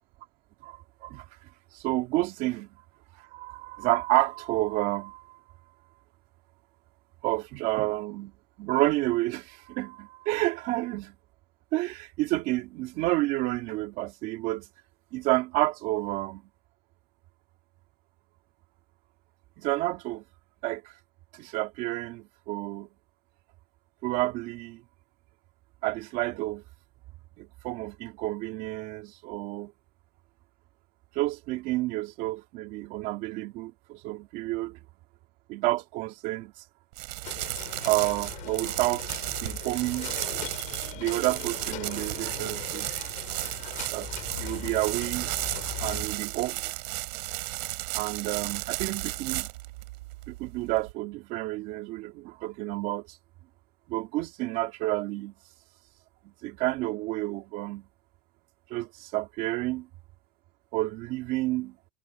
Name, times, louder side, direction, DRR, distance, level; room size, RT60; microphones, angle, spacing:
voice 1, 0.6-1.2 1.7-2.7 3.2-5.2 7.2-8.3 8.6-11.1 11.7-14.7 15.1-16.4 19.6-20.2 20.6-20.9 21.3-22.9 24.0-24.8 25.8-26.6 27.4-29.7 31.1-34.8 35.5-36.5 37.8-40.1 40.9-42.9 43.9-45.3 45.8-46.6 47.9-49.5 50.3-53.1 53.9-55.3 56.2-57.9 58.7-59.9 60.7-61.8, right 18 dB, 40° right, 2.6 m, -30 dB
sound 1, 36.9-50.9, right 20 dB, 80° right, 5.0 m, -34 dB
sound 2, 37.2-46.0, left 17 dB, 40° left, 6.5 m, -41 dB
cardioid pair, 175°, 21 cm